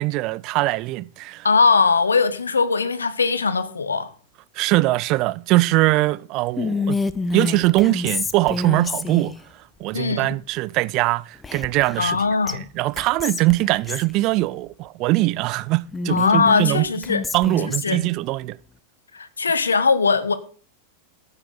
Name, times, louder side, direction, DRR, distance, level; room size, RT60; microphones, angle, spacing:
voice 1, 0.0-1.5 4.6-7.0 7.3-9.3 9.8-12.2 12.5-16.8 17.3-18.6, right 19 dB, 40° right, 0.4 m, -21 dB
voice 2, 1.4-4.1 9.9-10.3 12.0-12.7 16.1-17.2 17.8-18.0 19.1-20.3, left 4 dB, 75° left, 1.2 m, -20 dB
Whispering, 6.6-9.4 11.4-12.2 12.5-12.6 13.0-14.1 15.9-18.1, left 3 dB, 15° left, 0.8 m, -27 dB
14.5 x 8.8 x 3.9 m
figure-of-eight pair, 90°, 0 cm